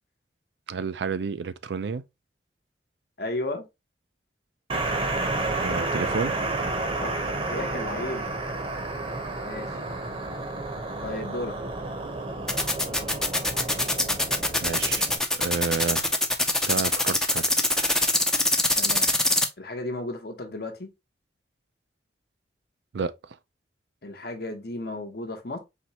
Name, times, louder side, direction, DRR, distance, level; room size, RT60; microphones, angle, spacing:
voice 1, 0.7-2.0 5.6-6.3 14.6-16.1 16.7-17.4 22.9-23.1, right 5 dB, 75° right, 0.4 m, -30 dB
voice 2, 3.2-3.7 7.0-8.3 9.4-9.8 11.0-11.6 18.8-19.1 19.6-20.9 24.0-25.6, left 2 dB, 60° left, 0.9 m, -34 dB
sound 1, 4.7-15.2, right 2 dB, 30° right, 0.8 m, -31 dB
sound 2, 12.5-19.5, left 1 dB, 5° left, 0.5 m, -23 dB
4.4 x 3.2 x 2.8 m
head